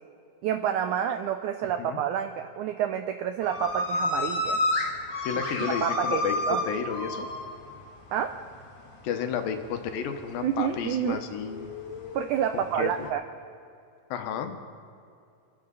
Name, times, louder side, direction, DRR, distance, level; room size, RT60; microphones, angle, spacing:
voice 1, 0.4-4.6 5.8-6.2 6.5-6.6 8.1-8.3 10.4-11.2 12.1-13.2, right 9 dB, 85° right, 7 dB, 1.7 m, -28 dB
sound 1, 3.4-8.2 8.5-8.9 9.3-10.2 10.7-13.1, left 2 dB, 45° left, 1.6 m, -30 dB
voice 2, 5.2-6.3 6.7-7.3 9.0-11.7 12.5-13.1 14.1-14.5, left 7 dB, 80° left, 6 dB, 2.7 m, -32 dB
26.0 x 11.0 x 4.0 m, 2.5 s
omnidirectional pair, 4.2 m